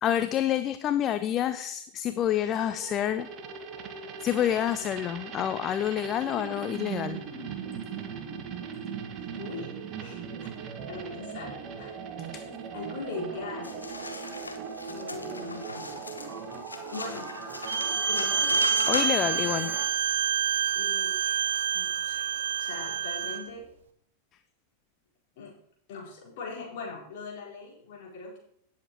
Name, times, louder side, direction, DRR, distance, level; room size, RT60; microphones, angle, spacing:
voice 1, 0.0-3.3 4.2-7.2 12.3-12.4 18.9-19.7, left 10 dB, 30° left, 11 dB, 0.5 m, -28 dB
sound 1, 2.7-19.9, right 6 dB, 35° right, 1.4 m, -39 dB
voice 2, 9.4-10.5 10.9-12.0 12.3-13.9 14.9-15.9 16.9-17.3 18.0-18.6 20.7-22.3 22.6-23.7 25.4-25.5 25.9-28.4, left 4 dB, 50° left, -3 dB, 4.3 m, -41 dB
sound 2, 13.6-19.6, left 3 dB, 80° left, 1.0 m, -38 dB
Bowed string instrument, 17.7-23.4, right 8 dB, 60° right, 1.1 m, -27 dB
17.5 x 7.3 x 3.0 m, 0.68 s
figure-of-eight pair, 90°, 0 cm